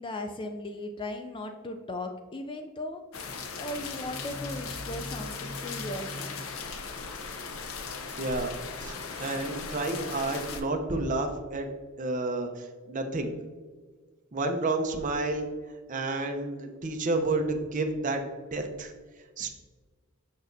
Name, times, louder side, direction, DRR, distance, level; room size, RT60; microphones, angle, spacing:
voice 1, 0.0-3.0 3.3-6.4, left 1 dB, 25° left, 5 dB, 0.3 m, -37 dB
sound 1, 3.1-10.6, left 4 dB, 75° left, 0.7 m, -37 dB
voice 2, 8.2-11.7 12.0-13.3 14.3-15.5 15.9-18.2 18.5-18.9 19.4-19.5, right 2 dB, 35° right, 4 dB, 0.7 m, -30 dB
6.4 x 5.9 x 2.6 m, 1.5 s
head